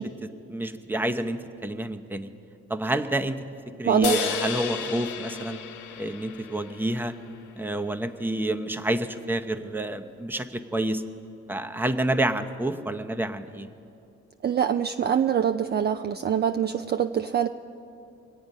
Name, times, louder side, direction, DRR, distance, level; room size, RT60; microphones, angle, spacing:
voice 1, 0.2-2.3 2.7-3.4 3.8-5.6 6.0-7.1 7.6-11.0 11.5-13.7, right 1 dB, 5° right, 7 dB, 0.7 m, -28 dB
voice 2, 3.8-4.3 14.4-17.5, right 8 dB, 35° right, 8 dB, 0.4 m, -24 dB
sound 1, 4.0-7.5, left 7 dB, 80° left, 1.0 m, -33 dB
23.0 x 8.6 x 5.3 m, 2.7 s
cardioid pair, 90°, 30 cm